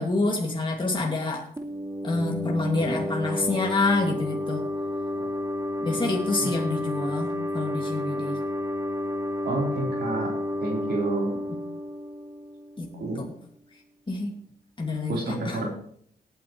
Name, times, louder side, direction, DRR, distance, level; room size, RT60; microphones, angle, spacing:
voice 1, 0.0-1.4 2.0-4.6 5.8-8.4 11.5-11.6 12.8-13.3 14.1-14.3 14.8-15.6, left 3 dB, 30° left, -1 dB, 2.3 m, -27 dB
sound 1, 1.6-13.0, left 1 dB, 20° right, 2.0 m, -31 dB
voice 2, 9.4-10.3 10.6-11.3 13.0-13.2 15.1-15.7, right 2 dB, 70° right, -3 dB, 4.0 m, -29 dB
18.0 x 9.3 x 3.2 m, 0.63 s
cardioid pair, 55°, 17 cm